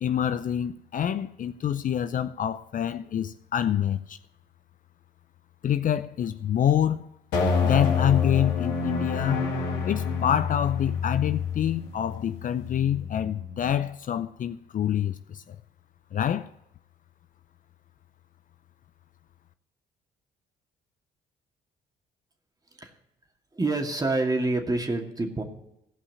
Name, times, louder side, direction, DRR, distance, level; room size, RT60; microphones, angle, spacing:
voice 1, 0.0-4.2 5.6-7.1 7.6-9.5 9.8-15.6 16.1-16.5, left 10 dB, 45° left, 0.6 m, -26 dB
sound 1, 7.3-13.8, left 5 dB, 70° left, 2.1 m, -28 dB
voice 2, 23.5-25.4, right 2 dB, 20° right, 2.4 m, -27 dB
16.0 x 5.6 x 9.5 m
hypercardioid pair, 55°, 18 cm